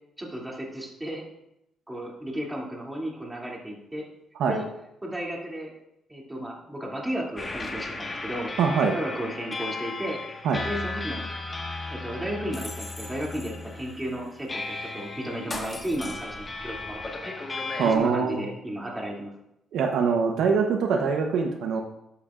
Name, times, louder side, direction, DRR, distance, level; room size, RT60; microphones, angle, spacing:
voice 1, 0.2-1.2 1.9-4.0 4.5-4.7 5.0-5.7 6.1-8.5 8.9-10.2 10.6-11.2 11.9-17.3 17.8-19.3, right 1 dB, 10° right, -3 dB, 2.7 m, -34 dB
sound 1, 7.4-18.0, left 3 dB, 25° left, 1.6 m, -35 dB
voice 2, 8.6-8.9 10.4-10.6 17.8-18.4 19.7-21.8, right 5 dB, 80° right, 3 dB, 0.9 m, -23 dB
12.5 x 8.4 x 2.5 m, 0.83 s
cardioid pair, 90°, 0 cm